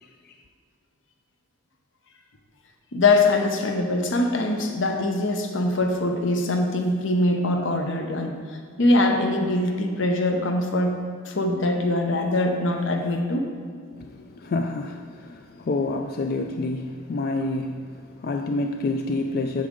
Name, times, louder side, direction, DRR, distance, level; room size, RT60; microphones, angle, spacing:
voice 1, 0.0-0.4 13.9-19.7, left 2 dB, 50° left, 5 dB, 0.4 m, -28 dB
voice 2, 2.9-8.3 8.8-11.0 11.3-13.5, left 2 dB, 65° left, 3 dB, 0.9 m, -23 dB
8.5 x 6.2 x 3.7 m, 2.1 s
head